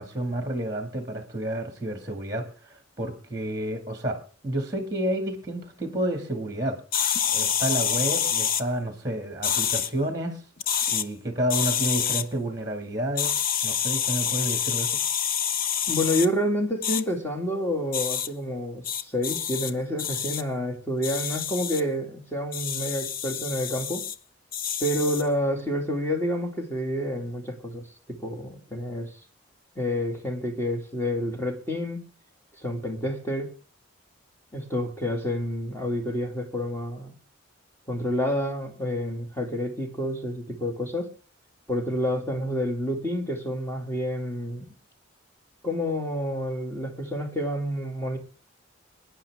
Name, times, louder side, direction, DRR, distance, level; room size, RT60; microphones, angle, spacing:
voice 1, 0.0-6.8 7.3-10.4 10.9-13.3 13.6-14.9, right 1 dB, 20° right, 6 dB, 2.2 m, -30 dB
sound 1, 6.9-8.6 9.4-9.9 10.6-11.0 11.5-12.2 13.2-16.3 16.8-17.0 17.9-18.3 18.8-19.7 20.0-20.4 21.0-21.8 22.5-24.1 24.5-25.3, left 8 dB, 45° left, 0.6 m, -27 dB
voice 2, 15.9-24.0 24.8-29.1 29.8-32.1 32.6-33.5 34.5-37.1 37.9-41.1 41.7-44.7 45.6-48.2, equal, 10° left, 2 dB, 2.3 m, -29 dB
23.5 x 10.0 x 3.6 m, 0.38 s
head